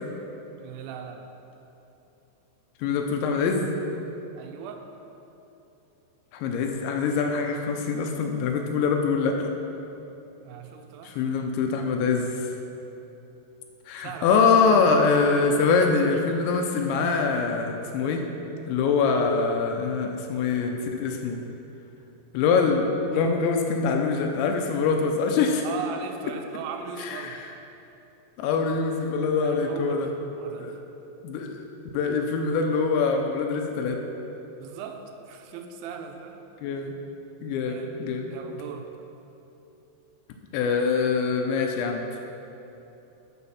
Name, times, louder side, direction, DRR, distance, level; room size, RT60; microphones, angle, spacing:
voice 1, 0.6-1.3 4.3-4.9 10.4-11.2 14.0-14.3 25.6-27.4 29.4-30.8 34.6-36.4 36.7-36.8 37.7-37.9 38.3-38.9, right 6 dB, 85° right, 5 dB, 2.9 m, -39 dB
voice 2, 2.8-3.7 6.3-9.5 11.0-12.5 13.9-18.2 18.7-21.4 22.3-25.7 27.0-27.4 28.4-30.1 30.6-30.7 31.2-31.7 31.9-34.0 36.6-36.9 37.4-38.3 40.5-42.2, left 5 dB, 80° left, 3 dB, 2.8 m, -24 dB
12.5 x 5.1 x 5.5 m, 3.0 s
omnidirectional pair, 5.5 m